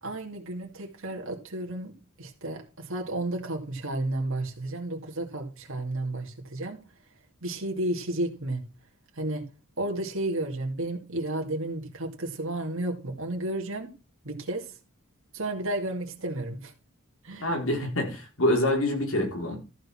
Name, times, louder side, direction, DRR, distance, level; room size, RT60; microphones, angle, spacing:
voice 1, 0.0-6.8 7.4-8.6 9.1-9.4 9.8-13.9 14.2-14.7 15.3-16.7 17.2-17.6, right 1 dB, 65° right, 2.4 m, -32 dB
voice 2, 17.4-19.6, left 1 dB, 70° left, 4.2 m, -26 dB
13.5 x 5.4 x 6.1 m
head